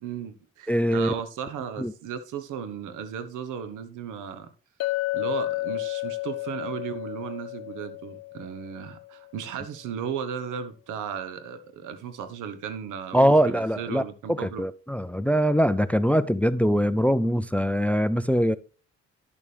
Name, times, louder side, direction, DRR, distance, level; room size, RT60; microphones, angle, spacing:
voice 1, 0.0-4.5 5.1-14.6, right 8 dB, 85° right, 1.2 m, -35 dB
voice 2, 0.7-1.1 1.8-1.9 13.1-14.0 14.3-18.6, equal, 5° left, 0.4 m, -22 dB
Chink clink, 4.8-9.2, left 19 dB, 55° left, 0.5 m, -32 dB
10.5 x 7.0 x 3.3 m
cardioid pair, 90°, 30 cm